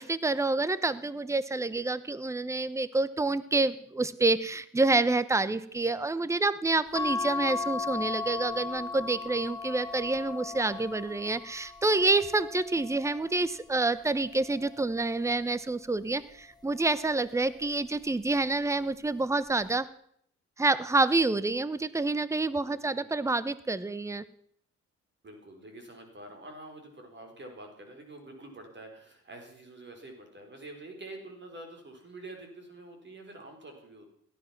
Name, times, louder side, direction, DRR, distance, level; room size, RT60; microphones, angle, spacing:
voice 1, 0.0-19.9 20.6-24.2, right 3 dB, 10° right, 16 dB, 0.8 m, -28 dB
sound 1, 6.9-13.6 14.2-15.6 16.8-17.3 17.6-17.7, left 4 dB, 15° left, 1.1 m, -37 dB
voice 2, 22.6-23.1 25.2-34.1, right 2 dB, 35° right, 3 dB, 4.5 m, -47 dB
17.0 x 12.0 x 6.0 m, 0.66 s
cardioid pair, 90°, 30 cm